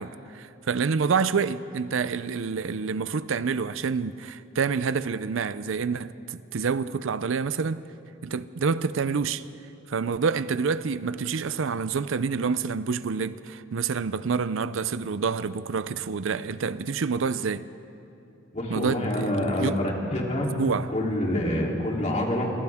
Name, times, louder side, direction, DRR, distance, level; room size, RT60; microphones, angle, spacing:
voice 1, 0.0-7.8 8.2-9.5 9.9-17.7 18.7-19.8 20.5-20.9, right 5 dB, 70° right, 0.5 m, -28 dB
voice 2, 18.5-20.5 20.9-22.5, left 1 dB, 35° left, 3.3 m, -26 dB
29.0 x 25.0 x 3.6 m
head